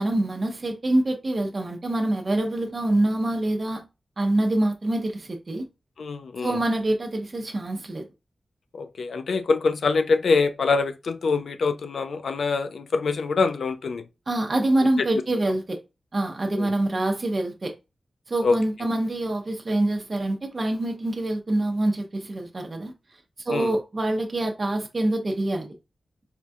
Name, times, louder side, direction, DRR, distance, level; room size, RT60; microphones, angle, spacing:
voice 1, 0.0-3.8 4.2-5.6 6.4-8.1 14.3-15.8 16.1-17.7 18.3-22.9 23.4-25.7, right 1 dB, 35° right, 0.5 m, -25 dB
voice 2, 6.0-6.6 8.7-14.0 16.5-16.7 18.4-18.5 23.5-23.7, left 4 dB, 85° left, 0.3 m, -24 dB
4.3 x 2.2 x 2.6 m
wide cardioid pair, 150°, 0 cm